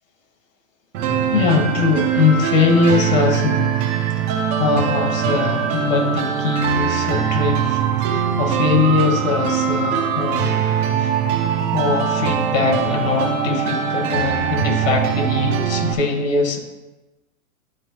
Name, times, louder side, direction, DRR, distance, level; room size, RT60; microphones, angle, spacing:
sound 1, 0.9-15.9, right 8 dB, 20° right, 0.6 m, -21 dB
voice 1, 1.3-3.9 4.2-10.6 10.9-11.2 11.7-16.6, left 4 dB, 60° left, 2 dB, 2.2 m, -21 dB
11.0 x 4.7 x 3.2 m, 1.1 s
hypercardioid pair, 150°, 43 cm